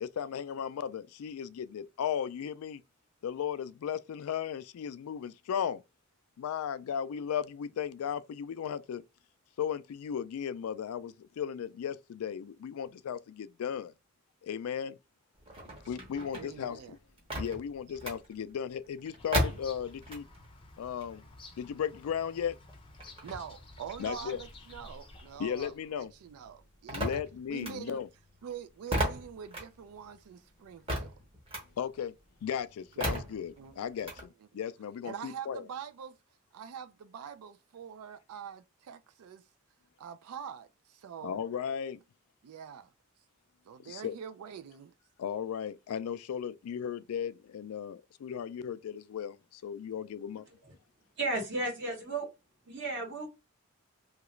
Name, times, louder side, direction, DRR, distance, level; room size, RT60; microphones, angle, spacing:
voice 1, 0.0-2.8 3.2-5.8 6.4-9.0 9.6-13.9 14.4-15.0 15.9-17.0 17.4-20.3 20.8-21.2 21.6-22.5 24.0-24.4 25.4-26.1 26.9-28.1 31.8-32.1 32.4-35.6 41.2-42.0 43.8-44.1 45.2-50.4, left 8 dB, 80° left, 0.3 m, -36 dB
sound 1, 15.4-20.5 20.8-25.7 26.0-34.2, equal, 25° right, 0.8 m, -37 dB
voice 2, 16.3-17.0 23.2-27.2 27.5-28.0 28.4-31.1 33.0-33.2 33.6-33.8 35.0-36.2 36.5-39.5 40.0-41.4 42.4-42.9 43.6-44.9, right 7 dB, 85° right, 0.4 m, -44 dB
Bird vocalization bird call bird song, 19.2-25.9, left 3 dB, 25° left, 0.5 m, -52 dB
voice 3, 51.2-52.3 52.7-53.3, right 2 dB, 55° right, 1.0 m, -33 dB
2.9 x 2.4 x 3.0 m
head